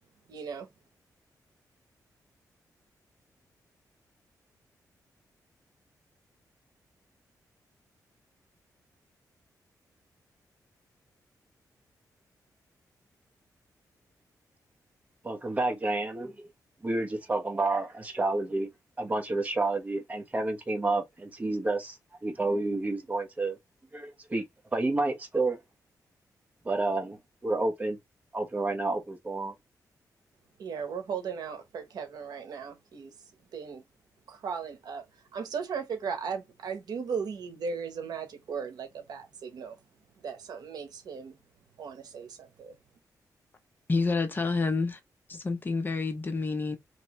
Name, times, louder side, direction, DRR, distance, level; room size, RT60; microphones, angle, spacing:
voice 1, 0.3-0.7 30.6-33.1 33.5-33.8 34.3-35.0 35.3-39.8 40.2-41.4 41.8-42.7, right 6 dB, 80° right, 1.0 m, -37 dB
voice 2, 15.2-16.3 16.8-18.7 19.0-23.6 23.9-24.4 24.7-25.6 26.6-27.2 27.4-28.0 28.3-29.5, right 2 dB, 20° right, 1.0 m, -29 dB
voice 3, 43.9-45.0 45.3-46.8, left 3 dB, 30° left, 0.7 m, -28 dB
3.2 x 2.9 x 3.0 m
wide cardioid pair, 125°, 7 cm